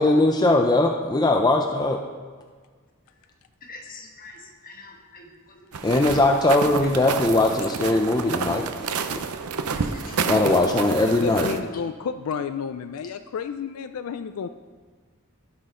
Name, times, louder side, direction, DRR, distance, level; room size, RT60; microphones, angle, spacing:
voice 1, 0.0-2.0 5.8-9.2 10.3-11.5, left 2 dB, 20° left, 2 dB, 0.5 m, -20 dB
voice 2, 3.6-4.4 4.6-5.6 5.9-6.0 9.7-10.2, left 3 dB, 40° left, 2 dB, 1.3 m, -44 dB
sound 1, 5.7-11.6, right 5 dB, 80° right, 0.6 m, -30 dB
voice 3, 11.2-14.5, left 6 dB, 75° left, 10 dB, 0.4 m, -31 dB
16.0 x 6.1 x 3.8 m, 1.5 s
head